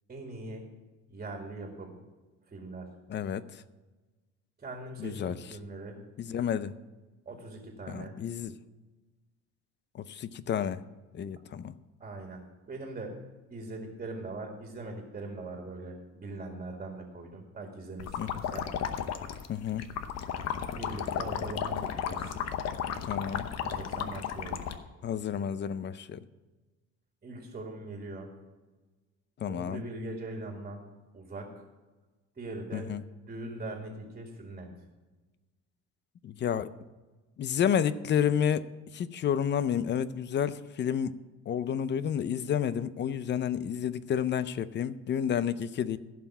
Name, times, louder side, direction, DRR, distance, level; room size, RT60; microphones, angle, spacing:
voice 1, 0.1-0.6 1.1-1.9 2.5-2.9 4.6-6.0 7.3-8.1 12.0-12.4 12.7-13.2 13.5-18.6 20.7-22.4 23.6-24.6 27.2-28.3 29.4-30.8 31.1-31.5 32.4-32.9 33.3-34.7, right 2 dB, 25° right, 2 dB, 2.0 m, -41 dB
voice 2, 3.1-3.6 5.0-5.3 6.2-6.7 7.9-8.6 9.9-10.8 11.1-11.7 18.2-18.3 19.5-19.8 23.0-23.5 25.0-26.2 29.4-29.8 32.7-33.0 36.2-36.7 37.4-38.7 38.9-41.1 41.5-46.0, left 8 dB, 35° left, 15 dB, 0.5 m, -30 dB
sound 1, 18.0-24.8, left 8 dB, 60° left, 0.9 m, -34 dB
15.5 x 5.9 x 6.0 m, 1.2 s
cardioid pair, 130°, 30 cm